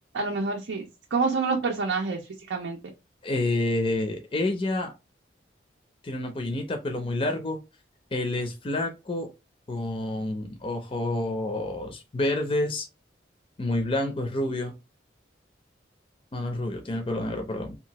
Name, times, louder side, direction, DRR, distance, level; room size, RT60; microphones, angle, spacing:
voice 1, 0.1-2.2 2.5-2.8, right 4 dB, 90° right, 0.5 m, -27 dB
voice 2, 3.2-4.9 6.0-7.6 8.1-9.3 9.7-12.9 13.6-14.7 16.3-17.8, left 1 dB, 30° left, 0.4 m, -28 dB
2.7 x 2.3 x 2.9 m
head